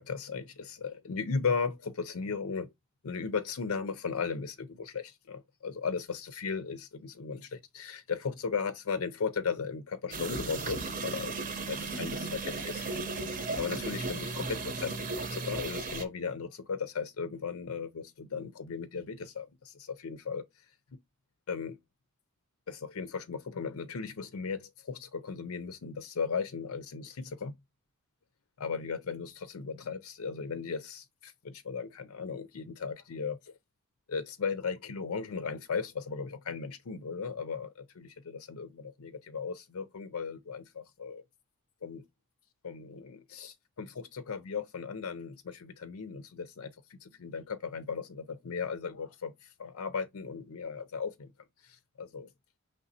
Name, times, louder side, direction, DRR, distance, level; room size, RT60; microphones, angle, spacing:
voice 1, 0.0-2.7 3.0-13.0 13.6-20.4 21.5-21.8 22.7-27.5 28.6-33.5 34.1-41.2 41.8-42.0 42.6-51.3 51.6-52.3, left 5 dB, 80° left, 0.5 m, -36 dB
sound 1, 10.1-16.0, right 3 dB, 40° right, 0.7 m, -35 dB
5.1 x 3.2 x 2.7 m
head